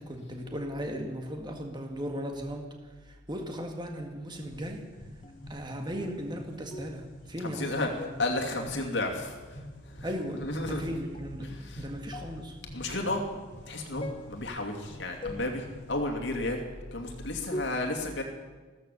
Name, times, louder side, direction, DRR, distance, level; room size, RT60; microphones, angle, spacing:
voice 1, 0.0-2.7 3.0-4.8 5.5-8.1 10.0-12.6, equal, 20° right, 3 dB, 1.7 m, -37 dB
sound 1, 4.3-15.9, left 1 dB, 45° left, 4.9 m, -48 dB
sound 2, 5.2-5.6 6.0-6.3 6.7-7.1 7.4-7.7 8.0-9.0 10.1-10.3 11.1-11.3 12.1-12.5 13.1-13.4 14.0-14.5 15.2-15.8 16.4-16.8 17.5-17.6, left 1 dB, 25° left, 1.0 m, -42 dB
voice 2, 7.4-7.9 8.2-10.1 10.3-10.8 11.4-11.8 12.7-16.6 16.9-18.2, left 2 dB, 65° left, 2 dB, 2.6 m, -33 dB
15.0 x 13.5 x 6.8 m, 1.3 s
head